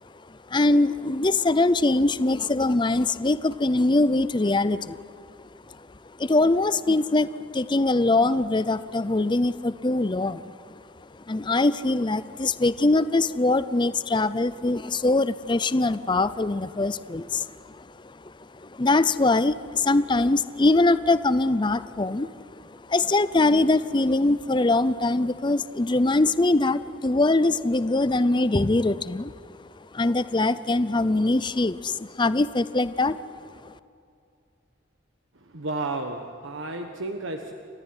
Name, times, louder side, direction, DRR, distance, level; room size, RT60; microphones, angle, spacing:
voice 1, 0.5-5.0 5.7-5.8 6.2-10.5 11.3-22.3 22.6-29.6 29.9-33.2 33.6-33.7, left 2 dB, 25° left, 15 dB, 0.6 m, -23 dB
voice 2, 35.4-37.5, right 2 dB, 80° right, 4 dB, 1.3 m, -32 dB
29.5 x 14.0 x 9.8 m, 2.4 s
head